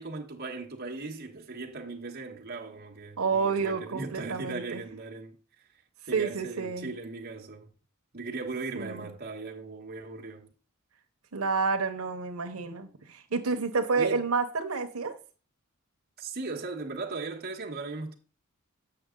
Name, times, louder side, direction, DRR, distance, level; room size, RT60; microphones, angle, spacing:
voice 1, 0.0-5.4 6.1-7.7 8.1-10.5 13.9-14.3 16.2-18.2, right 3 dB, 45° right, 1.4 m, -38 dB
voice 2, 3.2-4.8 6.1-6.9 8.7-9.1 11.3-15.1, right 4 dB, 90° right, 1.0 m, -29 dB
7.8 x 6.1 x 3.8 m
head